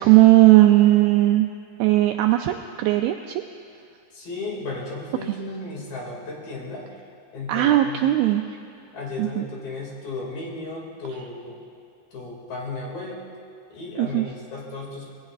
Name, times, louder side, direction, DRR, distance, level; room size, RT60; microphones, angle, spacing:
voice 1, 0.0-1.5 1.8-3.4 7.5-8.4 9.2-9.4 14.0-14.3, right 16 dB, 85° right, 5 dB, 2.1 m, -17 dB
voice 2, 4.1-6.9 7.3-8.1 8.9-11.6 12.1-13.2 13.7-15.1, left 2 dB, 65° left, -3 dB, 4.0 m, -34 dB
25.5 x 20.0 x 2.4 m, 2.3 s
omnidirectional pair, 4.9 m